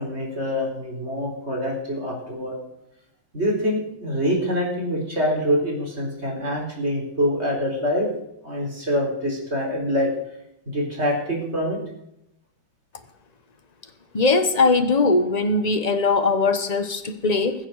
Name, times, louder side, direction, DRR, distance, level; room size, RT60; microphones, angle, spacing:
voice 1, 0.0-2.6 3.3-8.1 8.4-10.1 10.7-11.8, equal, 30° right, -1 dB, 4.1 m, -25 dB
voice 2, 14.1-17.5, left 3 dB, 30° left, 7 dB, 0.8 m, -20 dB
20.5 x 7.5 x 6.4 m, 0.80 s
omnidirectional pair, 2.3 m